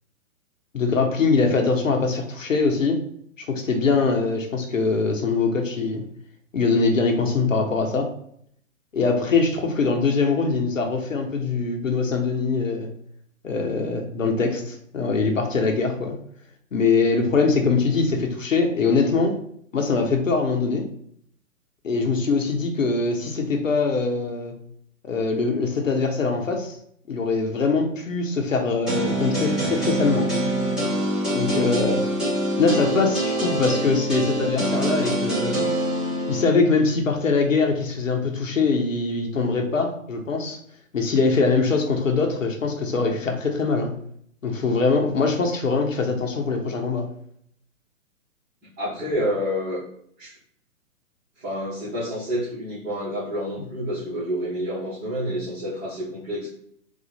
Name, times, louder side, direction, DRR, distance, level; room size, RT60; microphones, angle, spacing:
voice 1, 0.7-3.0 3.4-6.0 6.5-8.1 8.9-12.9 13.4-16.2 16.7-19.4 19.7-20.9 21.8-24.5 25.0-26.7 27.1-30.3 31.3-32.0 32.6-35.6 36.3-40.6 40.9-43.9 44.4-47.1, left 4 dB, 70° left, 3 dB, 1.0 m, -22 dB
sound 1, 28.9-36.5, right 1 dB, ahead, 1.5 m, -25 dB
voice 2, 48.6-49.8 50.2-50.3 51.4-56.5, equal, 25° right, -12 dB, 1.8 m, -29 dB
4.0 x 2.7 x 4.2 m, 0.67 s
figure-of-eight pair, 120°, 40 cm